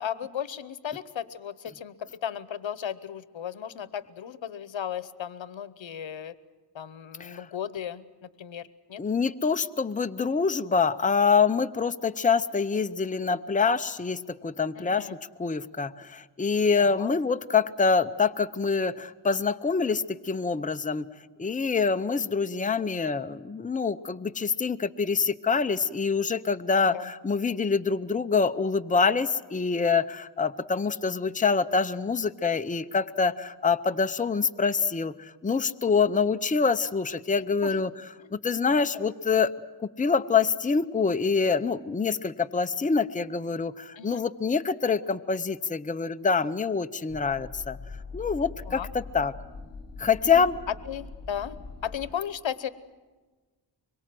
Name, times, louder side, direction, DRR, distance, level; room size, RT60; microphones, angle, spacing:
voice 1, 0.0-6.4 6.7-9.0 14.7-15.2 16.8-17.1 26.7-27.1 37.6-37.7 38.2-38.3 38.9-39.1 44.0-44.2 48.7-48.9 50.2-50.5 50.9-51.6 51.8-52.7, left 9 dB, 80° left, 15 dB, 1.0 m, -36 dB
voice 2, 9.0-15.1 15.4-21.1 21.4-37.9 38.3-39.5 40.0-47.8 48.1-49.3 50.0-50.6, left 5 dB, 20° left, 9 dB, 0.7 m, -25 dB
sound 1, 47.1-52.1, left 3 dB, 35° left, 3.4 m, -42 dB
24.5 x 23.0 x 7.6 m, 1.3 s
wide cardioid pair, 80°, 45 cm